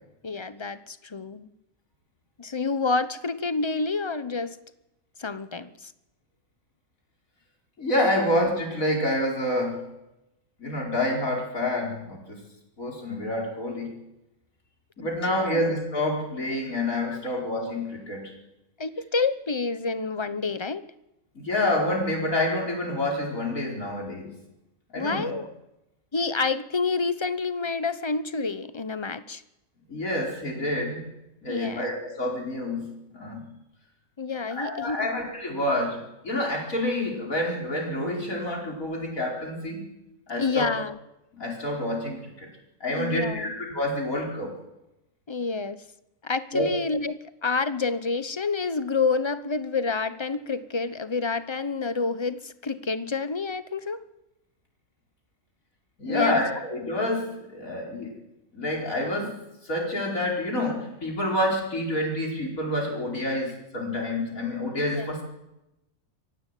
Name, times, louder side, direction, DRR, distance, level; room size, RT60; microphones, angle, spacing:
voice 1, 0.2-1.5 2.4-4.6 5.2-5.9 15.3-15.4 17.1-17.2 18.8-20.8 25.0-25.5 26.1-29.4 31.5-32.0 34.2-35.1 40.4-41.0 42.9-43.5 45.3-45.8 46.2-54.0 56.0-56.4 64.9-65.1, left 4 dB, 25° left, 13 dB, 0.7 m, -28 dB
voice 2, 7.8-9.9 10.6-12.4 12.8-14.0 15.0-18.3 21.4-24.3 24.9-25.4 29.9-31.1 31.4-33.5 34.5-39.9 40.3-40.7 41.3-42.5 42.8-44.5 46.5-46.7 56.0-58.1 58.5-65.2, left 1 dB, 75° left, -1 dB, 5.5 m, -28 dB
23.5 x 15.5 x 9.2 m, 0.94 s
omnidirectional pair, 1.4 m